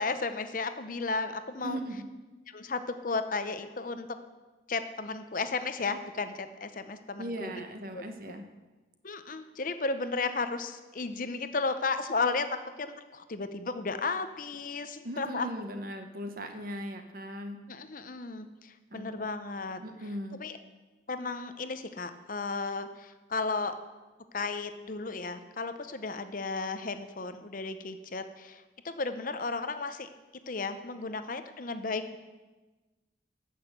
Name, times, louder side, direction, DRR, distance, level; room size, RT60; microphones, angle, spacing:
voice 1, 0.0-1.8 2.5-4.1 4.7-7.6 7.9-8.0 9.0-15.5 17.7-19.8 20.4-20.6 21.1-23.8 24.3-30.1 30.5-32.2, left 3 dB, 45° left, 10 dB, 0.7 m, -34 dB
voice 2, 1.6-2.1 7.2-8.5 15.0-17.7 18.9-19.3 19.8-20.4, right 1 dB, 50° right, 6 dB, 1.0 m, -38 dB
13.5 x 6.5 x 7.9 m, 1.2 s
head